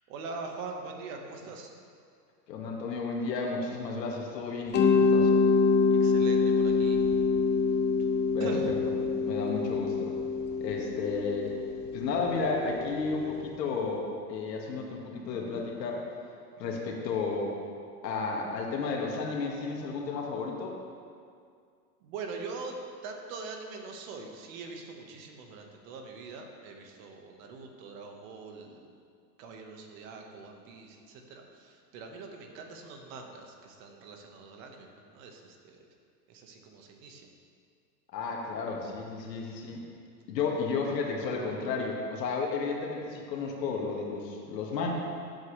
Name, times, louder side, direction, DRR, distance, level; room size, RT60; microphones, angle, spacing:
voice 1, 0.1-1.7 5.9-7.0 8.4-8.7 22.0-28.8 29.4-35.8 36.3-37.3, right 4 dB, 55° right, 2 dB, 1.7 m, -43 dB
voice 2, 2.5-5.3 8.3-10.1 10.6-11.6 11.9-16.0 16.6-17.5 18.0-20.7 38.1-39.8 40.3-44.9, left 4 dB, 80° left, -1 dB, 2.1 m, -33 dB
Mallet percussion, 4.7-13.5, left 4 dB, 20° left, 0.7 m, -26 dB
15.5 x 7.8 x 3.4 m, 2.2 s
hypercardioid pair, 125°, 49 cm